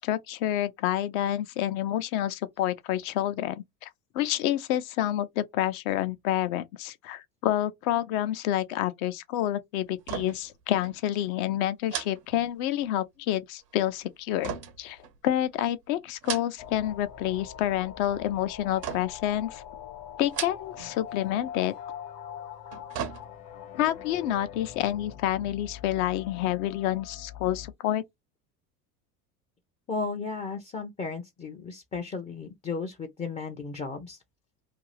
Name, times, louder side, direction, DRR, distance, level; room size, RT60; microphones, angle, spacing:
voice 1, 0.0-19.6 20.2-21.7 23.7-28.0, left 12 dB, 60° left, 0.7 m, -28 dB
sound 1, 10.0-10.6 10.8-11.0 11.9-13.0 14.4-15.5 16.1-16.9 17.2-17.7 18.8-19.3 20.2-21.0 21.2-21.4 22.5-23.6 24.1-24.2, right 8 dB, 90° right, 0.7 m, -37 dB
sound 2, 16.6-27.7, left 9 dB, 45° left, 1.0 m, -43 dB
voice 2, 29.9-34.2, left 4 dB, 15° left, 0.4 m, -34 dB
2.6 x 2.3 x 3.1 m
hypercardioid pair, 75°, 47 cm